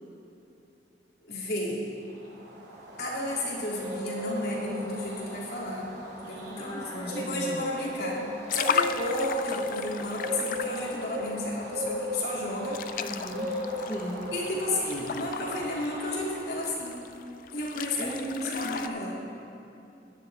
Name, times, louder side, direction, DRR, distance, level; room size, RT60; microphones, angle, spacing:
voice 1, 1.2-1.9 3.0-5.9 6.2-12.8 14.3-17.0 17.5-19.2, left 1 dB, 65° left, -5 dB, 2.7 m, -32 dB
sound 1, 2.1-16.8, left 1 dB, 85° right, 2.3 m, -37 dB
voice 2, 6.5-7.6 13.0-14.3 18.0-18.6, equal, 25° left, -5 dB, 1.3 m, -37 dB
sound 2, 8.5-12.0 12.4-18.9, left 7 dB, 50° left, 0.3 m, -35 dB
16.5 x 10.5 x 3.5 m, 2.9 s
head